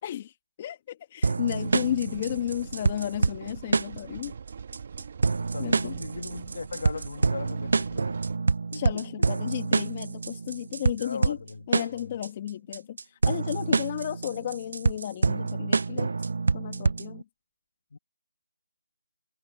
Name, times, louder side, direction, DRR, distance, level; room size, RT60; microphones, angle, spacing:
voice 1, 0.0-4.3 5.6-5.9 8.7-11.4 11.7-16.1 16.5-17.2, left 11 dB, 30° left, 1.5 m, -33 dB
sound 1, 1.2-17.2, right 4 dB, 60° right, 0.4 m, -27 dB
sound 2, 1.5-8.4, right 6 dB, 45° right, 1.5 m, -42 dB
voice 2, 5.5-8.1 8.7-9.0 11.0-12.1 17.9-18.0, left 4 dB, 60° left, 2.4 m, -39 dB
figure-of-eight pair, 160°, 0 cm